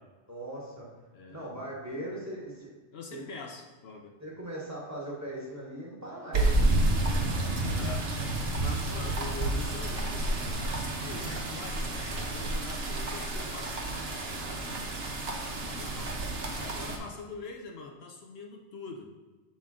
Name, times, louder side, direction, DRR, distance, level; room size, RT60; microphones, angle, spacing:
voice 1, 0.3-0.9 1.3-2.7 3.1-3.2 4.2-6.5, right 1 dB, 15° right, -4 dB, 1.3 m, -39 dB
voice 2, 1.1-1.5 2.9-4.2 7.6-8.1 8.6-14.6 15.6-16.2 16.5-19.1, left 4 dB, 65° left, 2 dB, 0.8 m, -44 dB
sound 1, 6.3-17.0, right 2 dB, 65° right, 1.1 m, -30 dB
7.1 x 4.2 x 3.6 m, 1.3 s
omnidirectional pair, 1.2 m